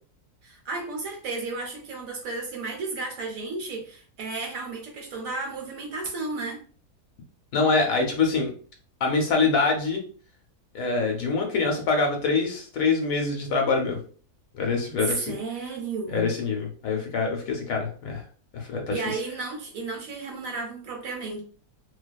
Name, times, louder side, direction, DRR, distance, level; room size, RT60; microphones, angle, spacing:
voice 1, 0.4-6.6 15.1-16.3 18.9-21.4, right 3 dB, 70° right, 2 dB, 0.9 m, -33 dB
voice 2, 7.5-8.5 9.0-10.0 10.7-14.0 14.5-15.4 16.1-18.2 18.5-19.0, left 4 dB, 70° left, 2 dB, 0.9 m, -25 dB
2.5 x 2.3 x 2.2 m, 0.42 s
omnidirectional pair, 1.7 m